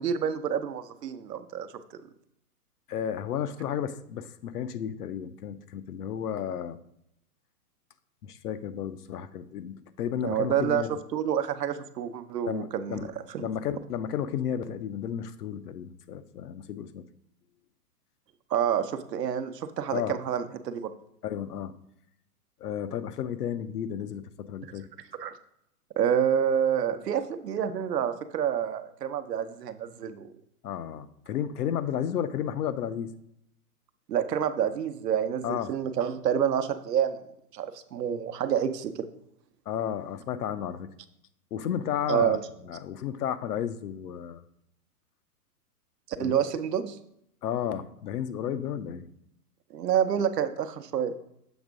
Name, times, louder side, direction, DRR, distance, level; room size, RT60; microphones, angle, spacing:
voice 1, 0.0-1.7 10.2-10.8 11.1-13.5 18.5-20.9 25.2-25.3 26.0-30.3 34.1-37.2 37.5-39.1 42.1-42.4 46.1-47.0 49.7-51.1, right 9 dB, 85° right, 10 dB, 0.8 m, -28 dB
voice 2, 2.9-6.8 8.2-10.9 12.4-13.1 13.4-17.0 19.9-20.2 21.2-21.7 22.6-24.9 30.6-33.1 35.4-35.8 39.7-40.9 41.5-42.4 42.6-44.4 46.2-46.4 47.4-49.1, left 9 dB, 75° left, 13 dB, 0.7 m, -32 dB
7.2 x 3.6 x 5.0 m, 0.74 s
hypercardioid pair, 150°, 47 cm